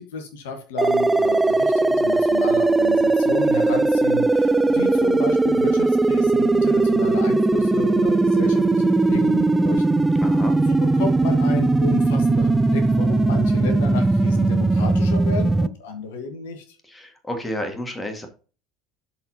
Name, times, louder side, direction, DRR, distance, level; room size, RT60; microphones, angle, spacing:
voice 1, 0.0-10.2 10.6-16.8, left 3 dB, 65° left, 7 dB, 1.3 m, -32 dB
sound 1, 0.8-15.7, right 2 dB, 10° right, 0.4 m, -19 dB
voice 2, 10.2-10.6 16.8-18.3, left 1 dB, 15° left, 6 dB, 1.8 m, -31 dB
12.5 x 4.4 x 2.8 m, 0.37 s
figure-of-eight pair, 70°, 0 cm